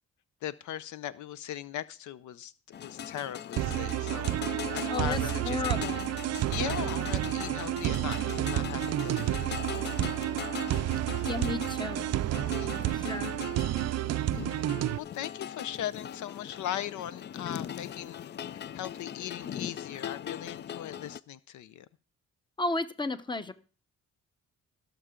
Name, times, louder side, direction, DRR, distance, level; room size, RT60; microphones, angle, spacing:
voice 1, 0.4-5.9 6.3-10.0 12.6-13.0 14.3-18.2 18.5-21.9, left 11 dB, 75° left, 0.6 m, -39 dB
sound 1, 2.7-21.2, left 9 dB, 35° left, 0.4 m, -40 dB
sound 2, 3.6-15.0, right 14 dB, 60° right, 0.4 m, -30 dB
voice 2, 4.9-6.1 11.3-12.0 12.8-13.3 22.6-23.5, left 3 dB, 15° left, 0.9 m, -33 dB
17.0 x 6.9 x 3.8 m
cardioid pair, 90°, 30 cm